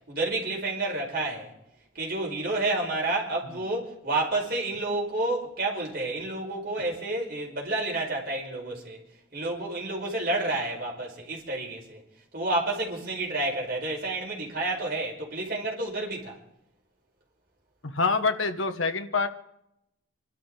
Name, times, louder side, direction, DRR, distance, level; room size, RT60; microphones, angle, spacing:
voice 1, 0.1-1.5 1.9-9.0 9.3-12.0 12.3-16.4, right 2 dB, 45° right, 5.0 m, -30 dB
voice 2, 17.8-19.3, left 4 dB, 75° left, 1.3 m, -26 dB
28.0 x 12.5 x 3.9 m
head